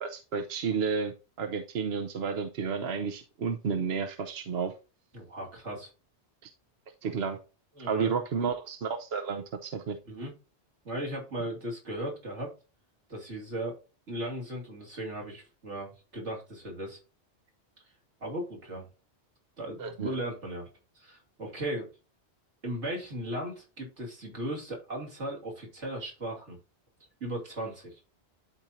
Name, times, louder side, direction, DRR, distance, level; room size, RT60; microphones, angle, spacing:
voice 1, 0.0-4.7 6.4-6.5 7.0-7.4 7.9-10.0 19.8-20.1, right 6 dB, 65° right, 5 dB, 1.0 m, -31 dB
voice 2, 5.1-5.9 7.8-8.1 10.1-10.3 10.8-12.5 13.1-13.8 14.1-17.0 18.2-18.9 19.6-20.7 21.0-21.9 22.6-26.6 27.2-28.0, right 1 dB, 85° right, -1 dB, 3.1 m, -37 dB
12.0 x 4.4 x 2.6 m, 0.30 s
omnidirectional pair, 1.2 m